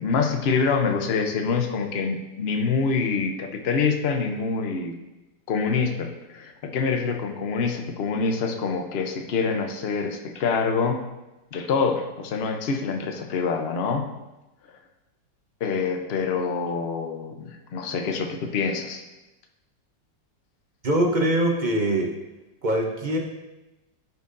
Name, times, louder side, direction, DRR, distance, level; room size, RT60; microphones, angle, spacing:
voice 1, 0.0-4.9 5.5-11.0 11.5-14.1 15.6-19.0, left 5 dB, 60° left, 4 dB, 0.6 m, -26 dB
voice 2, 20.8-22.2 22.6-23.2, right 1 dB, 45° right, 1 dB, 0.6 m, -23 dB
13.5 x 5.5 x 2.6 m, 1.0 s
omnidirectional pair, 2.0 m